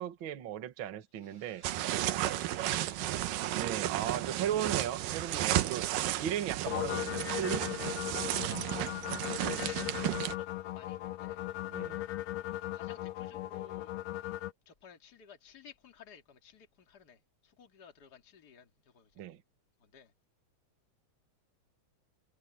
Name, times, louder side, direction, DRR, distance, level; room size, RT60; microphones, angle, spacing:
voice 1, 0.0-1.6 3.5-5.9 6.2-7.6 9.4-9.6 11.7-12.0 19.2-19.4, right 10 dB, 50° right, 1.7 m, -36 dB
sound 1, 1.2-11.1, right 3 dB, 30° right, 6.1 m, -60 dB
sound 2, 1.6-10.3, right 14 dB, 75° right, 2.6 m, -33 dB
sound 3, 6.7-14.5, left 14 dB, 80° left, 1.5 m, -38 dB
voice 2, 8.3-8.9 9.2-11.4 11.7-12.1 12.6-19.3 19.8-20.1, left 7 dB, 30° left, 2.3 m, -56 dB
omnidirectional pair, 4.0 m